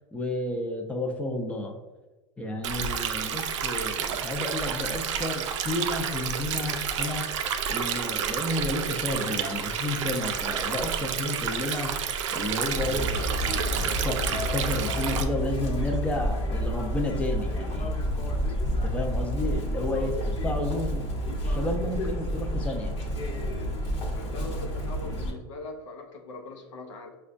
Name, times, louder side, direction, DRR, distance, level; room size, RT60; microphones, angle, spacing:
voice 1, 0.1-1.8 2.4-7.3 7.7-13.5 14.0-17.9 18.8-20.2 20.4-21.1 21.4-22.9, left 1 dB, 10° left, 2 dB, 0.5 m, -31 dB
Stream, 2.6-15.2, right 7 dB, 80° right, 0.4 m, -30 dB
Chirp tweet, 12.8-25.3, equal, 40° left, 1.0 m, -29 dB
voice 2, 24.1-27.2, left 2 dB, 90° left, 2 dB, 0.6 m, -41 dB
5.4 x 2.2 x 2.5 m, 1.2 s
supercardioid pair, 115°, 15 cm